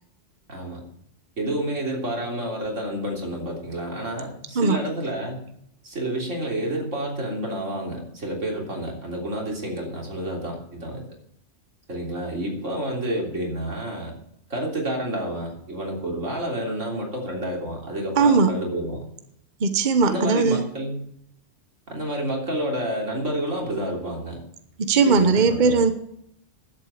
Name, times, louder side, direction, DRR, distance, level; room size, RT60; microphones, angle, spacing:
voice 1, 0.5-0.8 1.4-5.4 5.8-11.0 11.9-14.2 14.5-19.1 20.0-21.0 21.9-24.4 25.0-25.8, right 1 dB, 90° right, 0 dB, 3.7 m, -29 dB
voice 2, 18.2-18.5 19.6-20.6 24.8-25.9, right 4 dB, 40° right, 8 dB, 1.1 m, -19 dB
11.5 x 8.1 x 8.3 m, 0.72 s
omnidirectional pair, 1.3 m